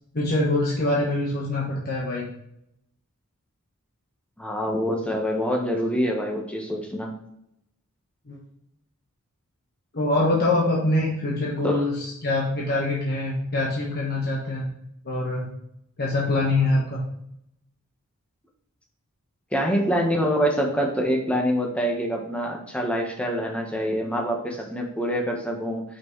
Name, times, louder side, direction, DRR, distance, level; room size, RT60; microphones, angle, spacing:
voice 1, 0.1-2.3 8.3-8.4 9.9-14.7 15.0-15.5 16.0-17.0, left 2 dB, 45° left, -4 dB, 1.3 m, -24 dB
voice 2, 4.4-7.1 11.6-11.8 19.5-25.8, equal, 5° left, 0 dB, 1.2 m, -25 dB
5.9 x 5.8 x 3.1 m, 0.76 s
head